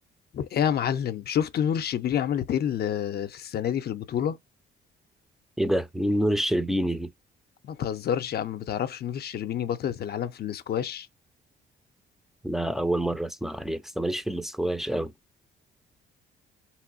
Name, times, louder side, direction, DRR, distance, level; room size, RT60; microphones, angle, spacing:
voice 1, 0.3-4.4 7.6-11.1, left 9 dB, 55° left, 0.5 m, -28 dB
voice 2, 5.6-7.1 12.4-15.1, right 1 dB, ahead, 0.4 m, -27 dB
3.0 x 3.0 x 2.5 m
cardioid pair, 90°, 20 cm